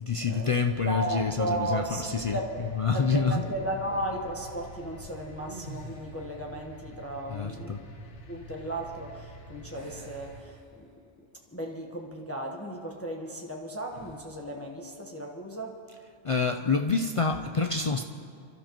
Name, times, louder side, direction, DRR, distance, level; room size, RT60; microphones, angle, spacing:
voice 1, 0.0-2.4 2.7-3.5 7.3-7.8 16.2-18.0, left 4 dB, 55° left, 4 dB, 0.3 m, -27 dB
sound 1, 0.7-10.4, left 2 dB, 80° left, 1.4 m, -46 dB
voice 2, 0.8-2.6 2.9-7.7 8.3-10.9 11.5-15.8, right 1 dB, 15° left, 0 dB, 1.0 m, -35 dB
sound 2, 1.8-2.4 5.4-6.5 9.7-11.2 11.6-11.8 13.9-14.4, right 1 dB, 40° right, 1.7 m, -48 dB
28.0 x 12.5 x 3.0 m, 2.3 s
omnidirectional pair, 1.2 m